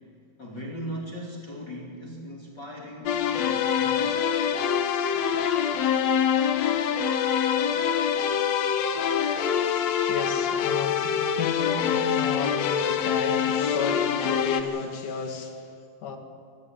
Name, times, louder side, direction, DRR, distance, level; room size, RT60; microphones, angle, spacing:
voice 1, 0.4-4.2, equal, 30° left, -3 dB, 3.0 m, -38 dB
sound 1, 3.1-14.6, left 8 dB, 90° left, 1.5 m, -25 dB
voice 2, 10.1-15.7 16.0-16.2, left 5 dB, 55° left, 4 dB, 3.1 m, -33 dB
23.5 x 14.0 x 9.0 m, 2.5 s
omnidirectional pair, 4.6 m